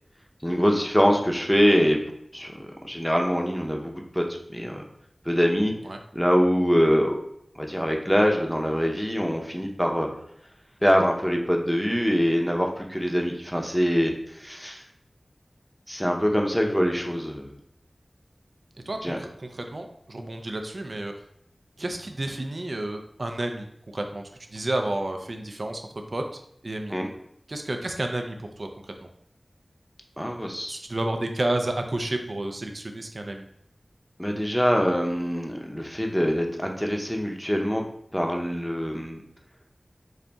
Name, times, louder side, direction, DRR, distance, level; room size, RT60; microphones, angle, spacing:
voice 1, 0.4-2.0 2.3-4.2 4.5-4.8 5.2-5.7 6.1-7.2 7.6-10.1 10.8-14.8 15.9-17.5 19.0-19.2 26.9-27.1 30.2-30.8 34.2-37.8 38.1-39.2, equal, 5° left, 1 dB, 0.7 m, -24 dB
voice 2, 18.9-21.1 21.8-26.2 26.6-26.9 27.5-28.7 29.0-29.1 30.7-33.5, right 1 dB, 60° right, 4 dB, 0.4 m, -31 dB
3.9 x 2.6 x 3.4 m, 0.73 s
wide cardioid pair, 50°, 0 cm